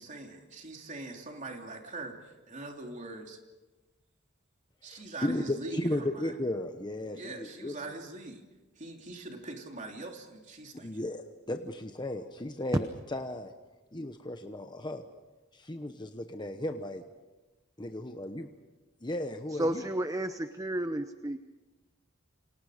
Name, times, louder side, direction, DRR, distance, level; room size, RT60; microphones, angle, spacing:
voice 1, 0.0-3.4 4.8-6.3 7.1-8.5 8.8-11.0, right 2 dB, 35° right, 2 dB, 3.1 m, -42 dB
voice 2, 4.9-7.7 10.8-13.5 13.9-15.0 15.5-17.0 17.8-18.5 19.0-19.8, left 1 dB, 20° left, 6 dB, 1.0 m, -35 dB
voice 3, 19.6-21.4, right 1 dB, 15° right, 9 dB, 0.8 m, -32 dB
29.0 x 26.0 x 5.0 m, 1.2 s
head